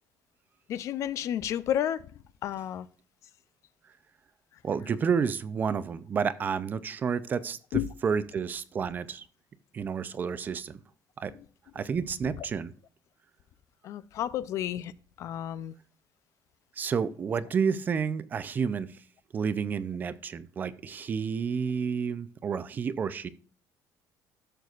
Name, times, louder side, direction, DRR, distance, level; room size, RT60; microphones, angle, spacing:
voice 1, 0.7-2.1 2.4-2.9 7.7-7.9 12.4-12.5 13.8-14.9 15.2-15.7, left 11 dB, 55° left, 0.4 m, -31 dB
voice 2, 4.6-9.2 9.7-10.8 11.2-11.3 11.7-12.7 16.8-19.0 19.3-23.3, right 6 dB, 30° right, 0.5 m, -30 dB
13.5 x 6.6 x 2.4 m
cardioid pair, 160°, 6 cm